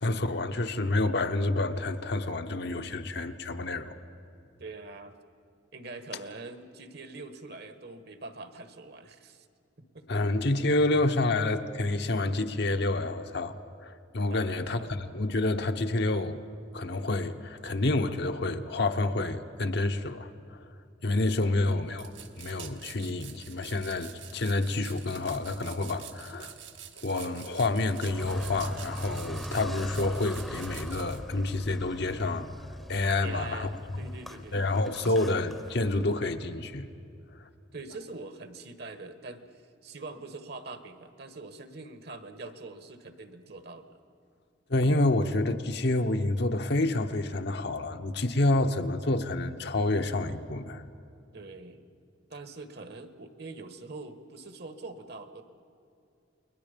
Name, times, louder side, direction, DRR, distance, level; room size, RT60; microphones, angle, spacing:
voice 1, 0.0-4.0 10.1-13.6 13.8-16.4 16.7-20.6 21.0-22.1 22.4-26.5 27.0-32.5 32.9-33.7 34.0-34.1 34.5-36.9 37.4-37.5 44.7-50.8, left 2 dB, 60° left, 1.0 m, -28 dB
voice 2, 4.6-5.1 5.7-9.5 9.8-10.2 14.3-15.0 21.4-21.9 33.2-34.6 35.0-35.1 37.7-44.0 51.3-51.8 52.3-55.4, right 3 dB, 55° right, 1.4 m, -44 dB
sound 1, 22.0-31.2, right 10 dB, 70° right, 1.4 m, -47 dB
Car, 27.9-36.2, equal, ahead, 0.8 m, -41 dB
29.5 x 21.5 x 5.3 m
head